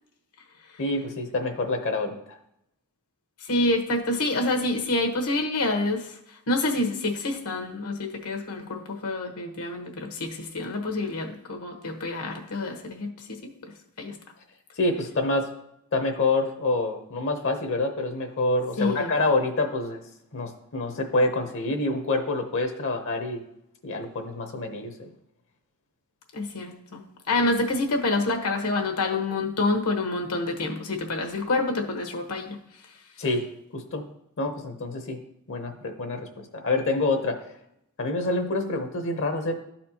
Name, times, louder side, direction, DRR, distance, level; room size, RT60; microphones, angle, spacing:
voice 1, 0.8-2.2 14.8-15.5 15.9-20.0 20.3-23.4 23.8-25.1 33.2-33.5 33.7-34.0 34.4-35.2 35.5-37.4 38.0-39.6, left 2 dB, 60° left, 5 dB, 0.8 m, -27 dB
voice 2, 3.5-6.1 6.5-13.7 14.0-14.1 18.8-19.1 26.3-32.6, left 2 dB, 80° left, 2 dB, 1.2 m, -27 dB
12.5 x 4.2 x 2.9 m, 0.79 s
head